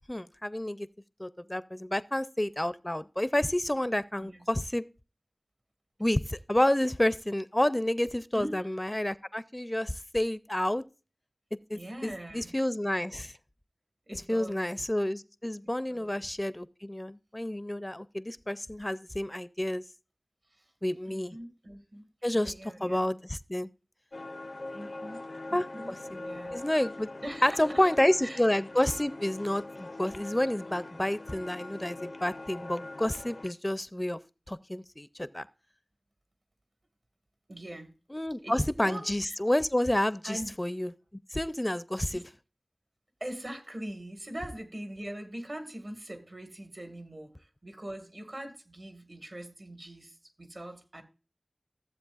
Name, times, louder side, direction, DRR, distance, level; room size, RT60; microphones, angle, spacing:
voice 1, 0.1-0.9 1.2-4.8 6.0-10.8 11.7-13.3 14.1-19.8 20.8-21.4 22.2-23.7 25.5-26.0 26.5-27.1 27.4-34.2 34.5-35.5 38.1-40.9 41.3-42.3, left 1 dB, 25° left, 0.4 m, -29 dB
voice 2, 8.3-8.7 11.7-12.6 14.1-14.7 15.6-16.3 20.5-20.7 21.1-23.2 24.7-25.2 25.5-26.7 27.2-27.8 28.2-28.4 37.5-37.9 38.4-39.4 40.2-40.5 42.1-42.2 43.2-51.0, right 1 dB, 70° right, 1.7 m, -42 dB
sound 1, 24.1-33.5, left 2 dB, 80° left, 0.6 m, -42 dB
15.0 x 7.7 x 2.4 m
wide cardioid pair, 45°, 0 cm